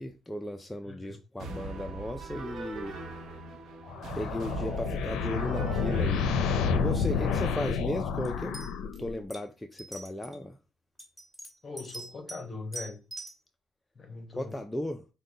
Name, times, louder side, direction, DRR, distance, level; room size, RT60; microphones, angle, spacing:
voice 1, 0.0-3.0 4.2-10.6 14.4-15.1, left 1 dB, 10° left, 0.4 m, -36 dB
voice 2, 0.8-1.2 11.6-13.0 13.9-14.6, left 3 dB, 35° left, 1.1 m, -41 dB
sound 1, 1.4-7.4, right 3 dB, 70° right, 0.8 m, -40 dB
sound 2, 3.9-9.3, left 5 dB, 90° left, 0.5 m, -30 dB
sound 3, 8.2-8.3 8.5-9.0 9.3-9.4 9.8-10.4 11.0-12.4 12.7-13.4, right 2 dB, 10° right, 1.8 m, -42 dB
5.2 x 2.2 x 3.8 m
cardioid pair, 90°, 0 cm